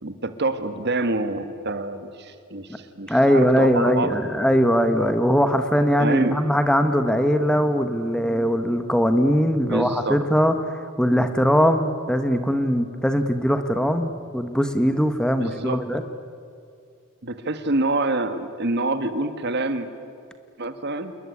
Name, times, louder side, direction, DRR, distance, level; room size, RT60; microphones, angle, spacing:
voice 1, 0.0-4.2 6.0-6.4 9.7-10.2 15.4-15.9 17.2-19.9 20.6-21.1, right 2 dB, 55° right, 10 dB, 1.8 m, -26 dB
voice 2, 3.1-16.0, equal, 5° left, 8 dB, 1.2 m, -21 dB
28.0 x 21.5 x 9.7 m, 2.3 s
head